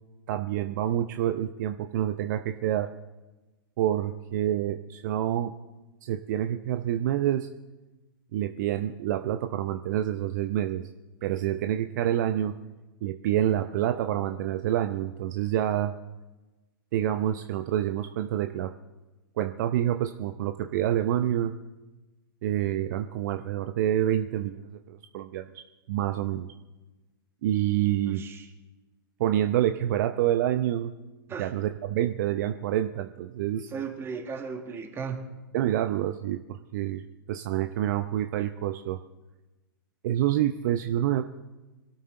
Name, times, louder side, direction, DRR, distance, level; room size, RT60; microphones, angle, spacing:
voice 1, 0.3-2.9 3.8-5.5 6.0-7.5 8.3-10.9 11.2-12.5 13.0-15.9 16.9-18.7 19.4-21.5 22.4-26.5 27.4-28.2 29.2-30.9 31.4-33.7 35.5-39.0 40.0-41.2, right 12 dB, 50° right, 8 dB, 0.7 m, -27 dB
voice 2, 28.1-28.5 31.3-31.5 33.7-35.2, right 5 dB, 20° right, 4 dB, 2.1 m, -36 dB
23.0 x 12.5 x 3.9 m, 1.1 s
hypercardioid pair, 115°, 12 cm